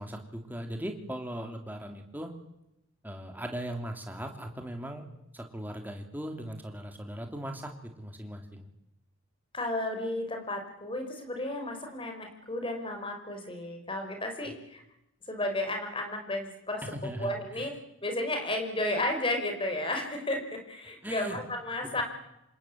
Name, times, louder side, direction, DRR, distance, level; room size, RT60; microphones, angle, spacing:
voice 1, 0.0-2.3 3.0-5.0 5.3-8.6 16.8-17.7 21.0-21.4, right 1 dB, 10° right, 4 dB, 3.1 m, -39 dB
voice 2, 9.5-14.8 15.3-16.8 17.2-17.7 18.0-22.0, left 1 dB, 25° left, 4 dB, 5.3 m, -33 dB
27.5 x 22.0 x 8.8 m, 0.87 s
head